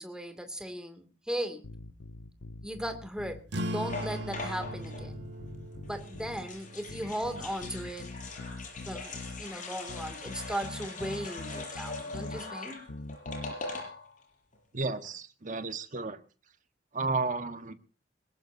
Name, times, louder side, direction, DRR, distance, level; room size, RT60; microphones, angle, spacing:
voice 1, 0.0-1.7 2.6-5.2 5.8-8.1 8.8-9.1 9.4-12.9, equal, 5° right, 7 dB, 2.6 m, -37 dB
sound 1, 1.6-3.4 3.9-6.5 6.9-9.5 9.9-12.4 12.9-13.5, left 2 dB, 80° left, 0.9 m, -44 dB
sound 2, 3.5-8.6, equal, 65° right, 1.4 m, -40 dB
sound 3, 3.9-5.0 5.9-14.2 14.5-14.6 14.8-15.1, left 3 dB, 45° left, 6.8 m, -42 dB
voice 2, 14.7-16.2 16.9-17.7, right 3 dB, 45° right, 9 dB, 1.5 m, -32 dB
22.0 x 19.5 x 2.8 m, 0.36 s
head